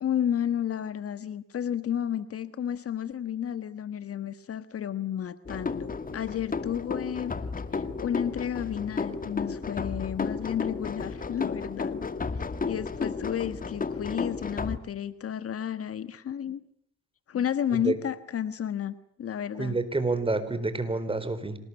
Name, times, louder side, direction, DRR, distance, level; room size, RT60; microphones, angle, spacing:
voice 1, 0.0-7.3 7.7-12.0 12.4-16.6 17.3-19.8, left 9 dB, 45° left, 13 dB, 1.4 m, -32 dB
sound 1, 5.4-14.8, left 4 dB, 25° left, 2.2 m, -33 dB
voice 2, 19.6-21.6, right 3 dB, 15° right, 11 dB, 4.3 m, -28 dB
26.5 x 20.0 x 9.8 m, 0.70 s
supercardioid pair, 80°, 31 cm